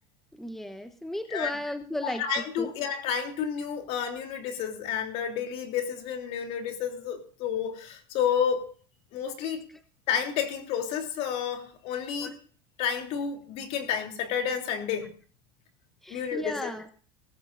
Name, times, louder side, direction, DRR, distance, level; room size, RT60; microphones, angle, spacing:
voice 1, 0.3-2.2 2.6-2.7 12.2-12.3 16.0-16.9, equal, ahead, 8 dB, 1.0 m, -34 dB
voice 2, 2.0-8.7 9.1-9.6 10.1-12.3 12.8-15.1 16.1-16.7, left 8 dB, 60° left, 4 dB, 3.2 m, -30 dB
18.5 x 15.0 x 2.6 m, 0.41 s
supercardioid pair, 125°, 12 cm